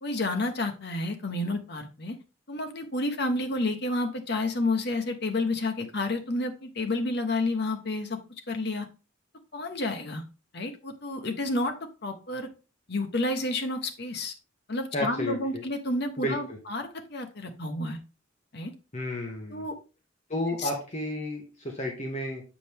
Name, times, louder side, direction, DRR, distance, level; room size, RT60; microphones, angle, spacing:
voice 1, 0.0-2.2 2.5-8.2 8.5-8.9 9.5-10.2 10.5-12.5 12.9-14.3 14.7-18.0 18.5-18.7 19.5-19.7 20.6-20.7, left 2 dB, 55° left, 5 dB, 1.2 m, -30 dB
voice 2, 14.9-15.6 16.2-16.6 18.9-19.6 20.3-22.4, left 1 dB, 35° left, 0 dB, 1.3 m, -32 dB
7.9 x 5.0 x 3.5 m, 0.31 s
head